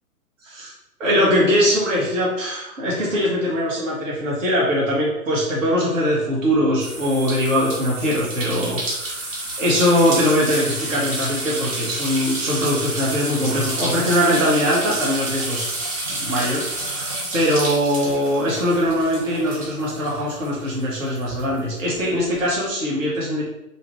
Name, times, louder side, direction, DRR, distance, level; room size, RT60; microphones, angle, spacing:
voice 1, 1.0-15.7 16.1-23.4, equal, 60° right, -5 dB, 1.0 m, -21 dB
sound 1, 6.8-20.8 21.2-22.4, right 2 dB, 25° right, 0.6 m, -29 dB
2.7 x 2.4 x 3.1 m, 0.90 s
figure-of-eight pair, 120°, 44 cm